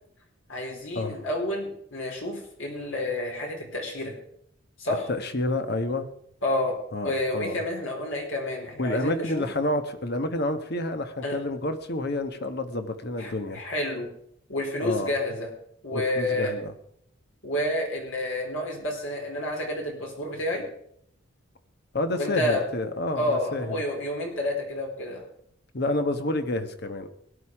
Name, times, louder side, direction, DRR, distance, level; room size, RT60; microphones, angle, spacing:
voice 1, 0.5-4.1 4.8-5.1 6.4-6.8 7.0-9.5 11.2-11.4 13.2-14.1 14.5-15.5 15.8-16.5 17.4-20.7 22.2-22.6 23.2-25.2, left 1 dB, 75° left, 0 dB, 4.5 m, -29 dB
voice 2, 5.1-6.1 6.9-7.6 8.8-13.6 14.8-15.1 15.9-16.7 21.9-23.8 25.7-27.1, left 2 dB, 55° left, 8 dB, 1.3 m, -29 dB
17.5 x 11.0 x 4.8 m, 0.70 s
head